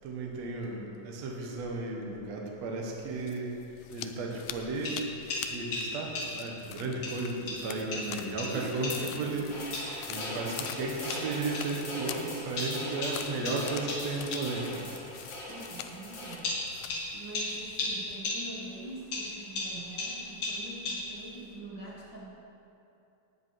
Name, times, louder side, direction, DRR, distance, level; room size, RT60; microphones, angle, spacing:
voice 1, 0.0-3.5 3.9-5.0 5.5-9.5 10.1-14.8, right 3 dB, 55° right, -1 dB, 2.2 m, -34 dB
sound 1, 3.0-18.2, left 11 dB, 85° left, 2.3 m, -45 dB
sound 2, 4.5-6.6 7.0-9.3 9.7-11.8 12.6-14.7 15.6-15.7 16.4-18.7 19.1-21.4, left 2 dB, 60° left, 3.4 m, -37 dB
voice 2, 8.1-9.5 9.7-10.2 15.5-16.6 17.1-22.3, right 2 dB, 85° right, -5 dB, 1.0 m, -44 dB
sound 3, 9.5-16.4, left 1 dB, 45° left, 3.4 m, -41 dB
15.5 x 9.4 x 4.7 m, 2.7 s
omnidirectional pair, 4.2 m